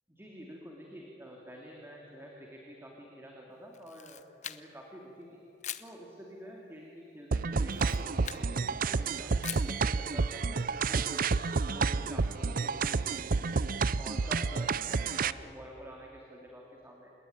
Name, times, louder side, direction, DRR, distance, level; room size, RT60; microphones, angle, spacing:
voice 1, 0.1-5.4 5.8-9.3 9.6-13.7 14.0-17.1, equal, 15° right, -1 dB, 2.8 m, -48 dB
Camera, 3.7-4.9 5.6-5.9 7.6-8.5 9.4-9.8, left 10 dB, 40° left, 0.8 m, -42 dB
sound 1, 7.3-15.3, right 4 dB, 50° right, 0.6 m, -30 dB
27.0 x 20.5 x 9.5 m, 3.0 s
head